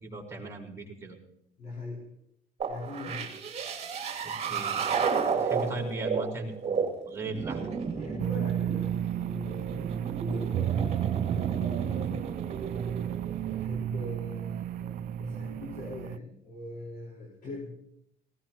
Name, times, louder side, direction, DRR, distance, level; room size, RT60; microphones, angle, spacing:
voice 1, 0.0-1.2 4.2-5.0 5.3-7.7, right 3 dB, 15° right, -1 dB, 4.9 m, -38 dB
voice 2, 1.6-2.0 2.7-3.3 7.9-11.0 11.2-12.2 13.5-17.7, left 2 dB, 55° left, -3 dB, 5.0 m, -42 dB
sound 1, 2.6-13.7, right 5 dB, 40° right, 2.7 m, -33 dB
sound 2, 8.2-16.2, right 10 dB, 55° right, 0.4 m, -32 dB
19.5 x 17.5 x 3.0 m, 0.74 s
cardioid pair, 110°, 17 cm